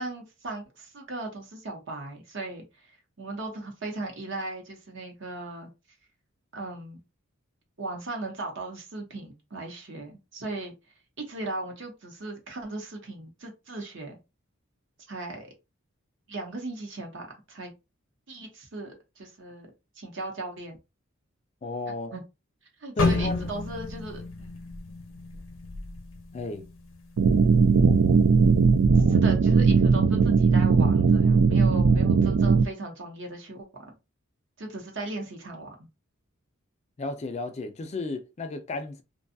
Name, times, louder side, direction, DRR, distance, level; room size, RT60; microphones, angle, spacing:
voice 1, 0.0-5.7 6.5-7.0 7.8-10.7 11.2-14.2 15.1-15.5 16.3-17.7 18.3-19.7 20.0-20.8 22.1-22.2 22.8-24.6 28.9-33.7 34.6-35.8, right 2 dB, 60° right, 0.9 m, -37 dB
voice 2, 21.6-22.1 23.0-23.5 26.3-26.7 37.0-39.0, left 2 dB, 30° left, 0.4 m, -33 dB
sound 1, 23.0-27.0 27.4-27.6 28.3-28.6, left 3 dB, 85° left, 0.6 m, -31 dB
sound 2, 27.2-32.6, right 5 dB, 90° right, 0.4 m, -19 dB
2.6 x 2.3 x 2.6 m
head